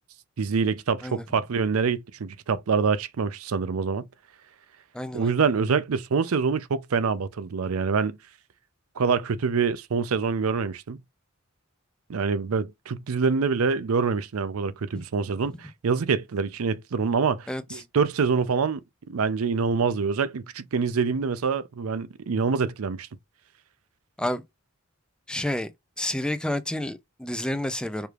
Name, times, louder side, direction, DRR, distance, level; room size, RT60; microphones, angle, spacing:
voice 1, 0.4-4.1 5.1-8.2 9.0-11.0 12.1-23.1, right 5 dB, 85° right, 0.5 m, -25 dB
voice 2, 4.9-5.3 17.5-17.8 24.2-24.4 25.3-25.7 26.0-28.1, left 1 dB, 5° left, 0.4 m, -30 dB
4.7 x 3.3 x 2.4 m
head